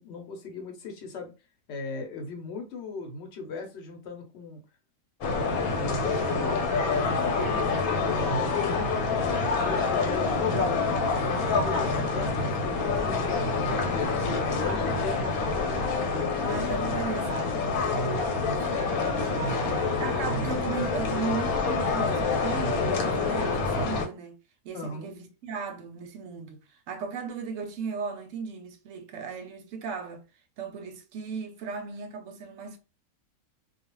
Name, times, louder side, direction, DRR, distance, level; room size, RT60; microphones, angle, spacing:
voice 1, 0.0-1.3 1.7-4.6 5.4-6.7 6.9-7.4 8.1-10.8 11.1-14.1 14.4-15.8 18.6-19.9 24.7-25.1, left 3 dB, 55° left, 1.0 m, -38 dB
sound 1, 5.2-24.1, left 4 dB, 85° left, 1.2 m, -27 dB
voice 2, 10.4-10.8 16.5-18.3 19.8-24.4 24.6-30.2 30.6-32.8, right 5 dB, 70° right, 0.9 m, -36 dB
2.4 x 2.4 x 3.0 m
omnidirectional pair, 1.5 m